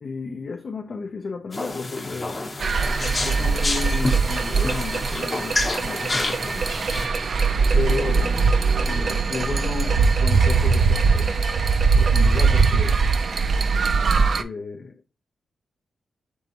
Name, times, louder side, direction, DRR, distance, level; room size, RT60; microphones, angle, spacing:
voice 1, 0.0-2.5 3.0-6.7 7.7-8.4 8.8-11.4 12.0-13.4 14.2-15.1, left 4 dB, 45° left, 0.4 m, -33 dB
sound 1, 1.5-7.1, left 2 dB, 30° left, 0.8 m, -29 dB
sound 2, 2.6-14.4, right 4 dB, 50° right, 0.3 m, -21 dB
4.5 x 4.0 x 2.8 m
wide cardioid pair, 120°, 0 cm